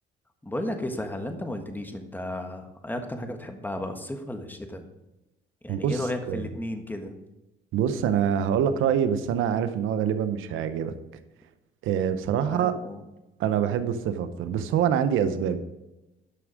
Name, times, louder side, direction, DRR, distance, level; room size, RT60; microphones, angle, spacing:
voice 1, 0.4-4.9 5.6-7.2 12.4-13.0, left 1 dB, 10° left, 5 dB, 1.4 m, -34 dB
voice 2, 5.7-6.0 6.3-6.4 7.7-10.9 11.8-12.7 13.4-15.6, right 8 dB, 90° right, 11 dB, 0.8 m, -25 dB
11.5 x 6.1 x 5.0 m, 0.99 s
cardioid pair, 90°, 20 cm